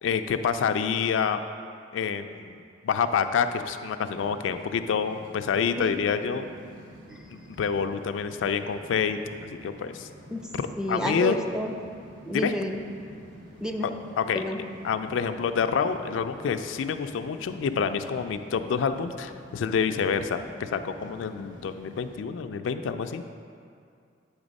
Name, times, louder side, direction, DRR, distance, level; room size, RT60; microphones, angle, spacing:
voice 1, 0.0-1.4 1.9-2.5 2.8-6.5 7.6-9.2 9.6-10.1 10.9-11.4 12.3-12.5 14.2-14.4 14.8-23.2, left 6 dB, 75° left, 9 dB, 0.3 m, -27 dB
sound 1, 4.0-22.2, equal, 80° right, 1.0 m, -48 dB
voice 2, 10.8-11.7 12.2-12.8 13.6-13.9 14.3-14.6, equal, 5° right, 3 dB, 0.4 m, -30 dB
8.8 x 3.4 x 5.2 m, 2.3 s
head